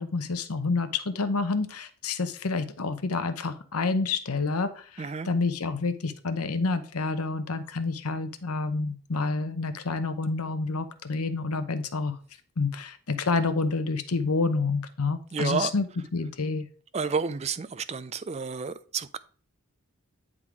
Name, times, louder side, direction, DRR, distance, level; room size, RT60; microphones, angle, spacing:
voice 1, 0.0-12.2 12.6-15.9 16.1-16.7, left 3 dB, 85° left, 0.9 m, -28 dB
voice 2, 5.0-5.3 15.3-15.7 16.9-19.2, right 5 dB, 30° right, 0.4 m, -30 dB
9.8 x 3.7 x 4.8 m
head